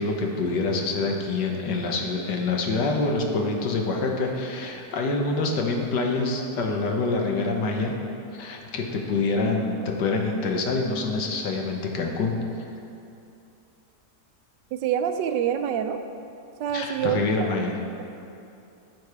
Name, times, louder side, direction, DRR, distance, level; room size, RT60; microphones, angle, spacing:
voice 1, 0.0-7.9 8.3-12.7 16.7-17.8, left 3 dB, 70° left, 1 dB, 1.5 m, -26 dB
voice 2, 14.7-16.0 16.6-17.2, right 9 dB, 80° right, 7 dB, 1.2 m, -26 dB
14.0 x 4.8 x 4.8 m, 2.7 s
omnidirectional pair, 2.0 m